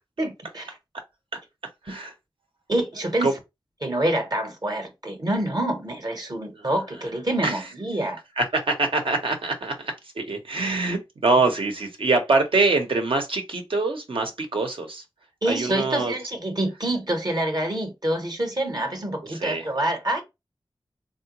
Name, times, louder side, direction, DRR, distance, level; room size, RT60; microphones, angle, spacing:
voice 1, 0.2-0.7 1.9-2.0 2.7-3.3 3.8-8.2 15.4-20.2, right 1 dB, 45° right, 0.8 m, -26 dB
voice 2, 8.4-15.0 15.5-16.1 19.3-19.7, right 3 dB, 80° right, 0.8 m, -24 dB
3.6 x 2.1 x 2.8 m
wide cardioid pair, 55°, 9 cm